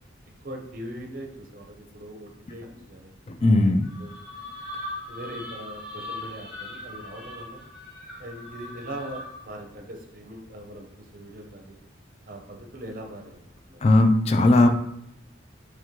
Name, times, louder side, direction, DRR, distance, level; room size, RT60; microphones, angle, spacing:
voice 1, 0.4-3.1 4.0-4.1 5.1-7.6 8.2-11.7 12.3-13.8, right 1 dB, 45° right, 2 dB, 0.6 m, -40 dB
voice 2, 3.3-3.9 13.8-14.7, left 2 dB, 30° left, 6 dB, 0.3 m, -18 dB
sound 1, 3.8-9.5, left 1 dB, 5° right, 0.8 m, -39 dB
3.2 x 3.0 x 3.6 m, 0.79 s
head